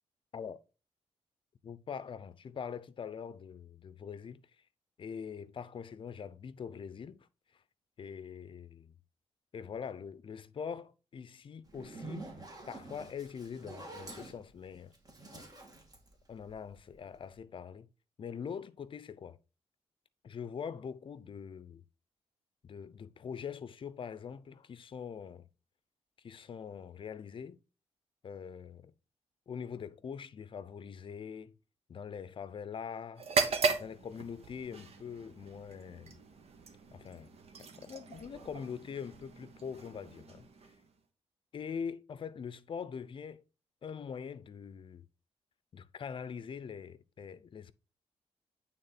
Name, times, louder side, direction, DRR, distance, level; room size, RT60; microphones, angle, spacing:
voice 1, 1.6-4.4 5.0-7.3 8.0-9.0 9.5-12.3 12.7-14.9 15.3-15.5 16.3-17.9 18.2-19.4 20.2-21.8 22.6-25.5 26.2-27.6 28.2-28.9 29.5-31.5 31.9-33.3 33.8-36.2 36.9-37.3 37.6-40.5 41.5-43.4 43.8-45.1 45.7-47.7, left 7 dB, 50° left, 0.6 m, -43 dB
Zipper (clothing), 11.6-16.9, right 2 dB, 35° right, 1.9 m, -48 dB
sound 1, 33.2-41.0, right 4 dB, 65° right, 1.1 m, -37 dB
9.0 x 3.7 x 4.2 m
cardioid pair, 110°, 11 cm